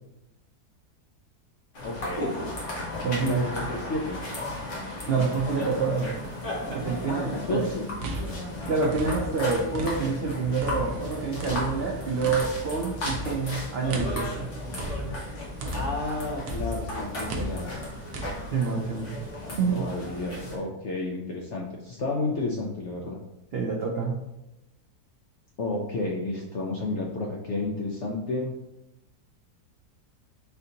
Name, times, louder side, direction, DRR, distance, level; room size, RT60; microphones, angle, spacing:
sound 1, 1.7-20.6, left 1 dB, 50° left, 1.4 m, -35 dB
voice 1, 1.8-2.4 3.2-4.2 7.1-7.9 15.7-17.8 19.5-23.2 25.6-28.5, left 2 dB, 70° left, -1 dB, 0.6 m, -31 dB
voice 2, 3.0-3.4 5.1-6.1 6.7-7.7 8.7-14.5 18.5-19.2 19.6-19.9 23.5-24.2, right 5 dB, 85° right, -1 dB, 0.5 m, -27 dB
sound 2, 7.8-10.2 10.6-16.1 16.5-18.3, equal, 65° right, 1.0 m, -35 dB
4.3 x 2.7 x 3.8 m, 0.90 s
omnidirectional pair, 1.7 m